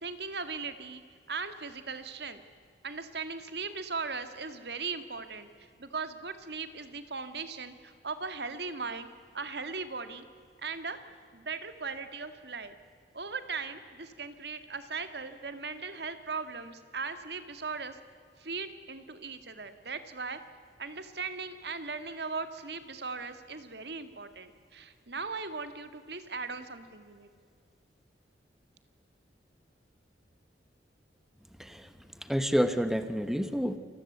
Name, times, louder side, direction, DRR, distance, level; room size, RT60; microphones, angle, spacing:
voice 1, 0.0-1.0 1.3-2.4 2.8-5.5 5.8-9.1 9.3-10.2 10.6-11.0 11.3-12.7 13.1-18.0 18.4-20.4 20.8-27.3, right 4 dB, 65° right, 10 dB, 2.0 m, -38 dB
voice 2, 31.6-31.9 32.2-33.8, equal, ahead, 10 dB, 1.1 m, -29 dB
28.0 x 21.0 x 8.1 m, 2.1 s
head